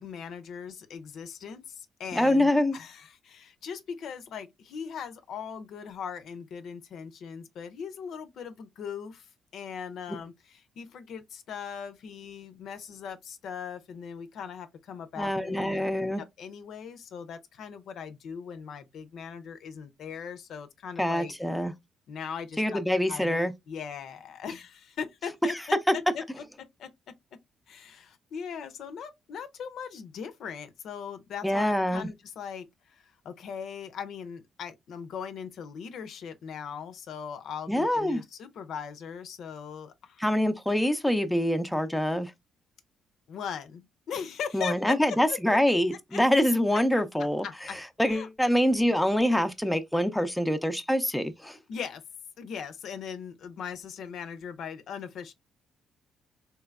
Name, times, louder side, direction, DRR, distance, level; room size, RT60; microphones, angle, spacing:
voice 1, 0.0-15.8 16.2-21.3 22.1-22.8 23.1-26.4 26.8-26.9 27.7-40.3 43.3-45.6 46.1-46.2 46.7-46.8 47.4-47.8 48.1-48.3 51.7-52.0 52.4-55.3, left 7 dB, 70° left, 0.5 m, -39 dB
voice 2, 2.1-2.8 15.2-16.2 21.0-21.7 22.6-23.5 25.9-26.0 31.4-32.1 37.7-38.2 40.2-42.3 44.5-47.5 48.0-51.6, left 1 dB, 5° left, 0.5 m, -25 dB
3.3 x 3.0 x 2.3 m
cardioid pair, 90°, 0 cm